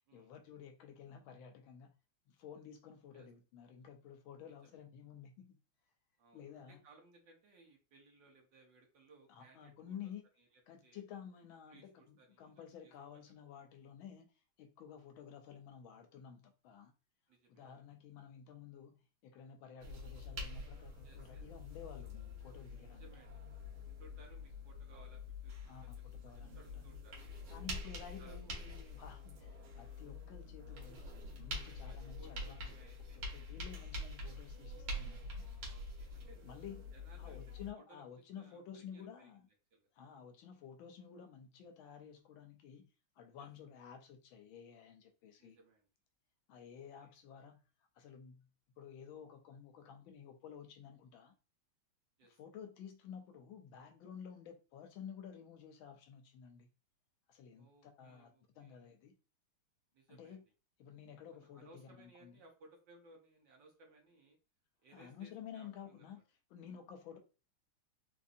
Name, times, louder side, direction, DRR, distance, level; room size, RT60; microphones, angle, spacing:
voice 1, 0.1-1.9 2.3-5.6 6.3-6.8 9.3-10.2 10.7-16.9 17.5-23.0 25.6-26.8 27.5-31.1 31.4-32.7 33.2-35.5 36.4-36.8 37.2-39.5 39.9-42.9 43.2-45.6 46.5-47.7 47.9-48.5 48.8-51.3 52.2-56.7 57.3-59.1 60.1-60.4 60.8-62.4 64.9-67.2, left 8 dB, 80° left, 1.3 m, -52 dB
voice 2, 4.4-4.8 6.2-10.0 10.4-10.5 10.8-11.0 11.7-12.9 17.3-17.7 21.0-21.4 22.9-23.4 23.8-25.6 26.3-27.2 28.2-28.5 30.7-30.9 31.6-33.2 35.5-36.4 36.9-37.4 37.9-38.0 38.4-39.3 39.7-39.9 43.4-43.5 45.4-45.9 46.7-47.1 52.2-52.4 57.6-59.0 59.9-60.4 61.3-64.4 64.8-66.2, right 2 dB, 65° right, 1.5 m, -63 dB
sound 1, 19.8-37.7, left 2 dB, 85° right, 2.0 m, -46 dB
3.9 x 2.6 x 2.5 m
omnidirectional pair, 2.3 m